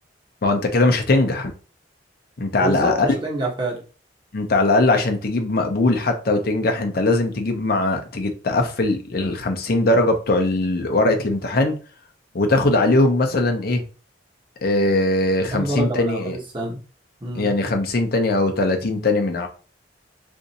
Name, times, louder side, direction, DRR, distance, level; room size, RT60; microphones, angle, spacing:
voice 1, 0.4-1.5 2.4-3.1 4.3-11.8 12.3-13.8 14.6-16.4 17.3-19.5, left 2 dB, 55° left, 0.6 m, -20 dB
voice 2, 2.6-3.8 15.5-16.8 17.2-17.5, right 1 dB, 25° right, 1.1 m, -27 dB
2.6 x 2.5 x 4.0 m
head